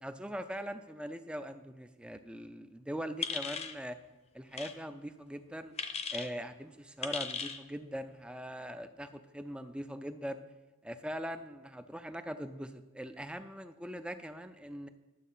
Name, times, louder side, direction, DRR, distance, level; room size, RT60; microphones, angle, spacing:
voice 1, 0.0-4.0 4.3-5.7 6.1-10.4 10.8-14.9, equal, 5° right, 10 dB, 0.4 m, -41 dB
sound 1, 3.2-3.8 4.5-4.7 5.8-6.3 7.0-7.6, left 6 dB, 30° left, 0.7 m, -37 dB
11.0 x 7.4 x 5.5 m, 1.1 s
head